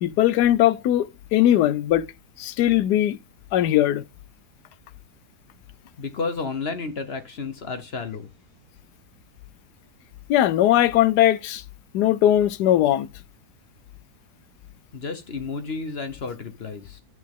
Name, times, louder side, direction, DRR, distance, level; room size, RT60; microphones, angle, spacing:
voice 1, 0.0-2.0 2.4-3.2 3.5-4.0 10.3-11.6 11.9-13.1, left 12 dB, 80° left, 1.2 m, -19 dB
voice 2, 6.0-8.3 14.9-17.0, left 4 dB, 45° left, 0.9 m, -31 dB
10.5 x 6.2 x 3.6 m
omnidirectional pair, 1.7 m